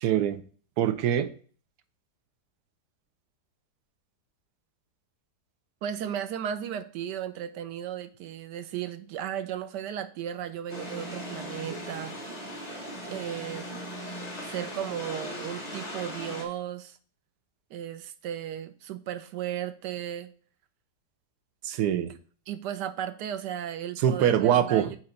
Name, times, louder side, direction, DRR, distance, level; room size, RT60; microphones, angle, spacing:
voice 1, 0.0-0.4 0.8-1.3 21.6-22.1 24.0-24.9, right 10 dB, 75° right, 11 dB, 1.2 m, -24 dB
voice 2, 5.8-12.2 13.1-13.7 14.4-17.0 17.7-20.3 22.5-25.0, right 10 dB, 90° right, 11 dB, 1.3 m, -35 dB
sound 1, 10.7-16.5, equal, 25° left, 1.6 m, -38 dB
7.5 x 3.1 x 5.7 m, 0.43 s
omnidirectional pair, 1.8 m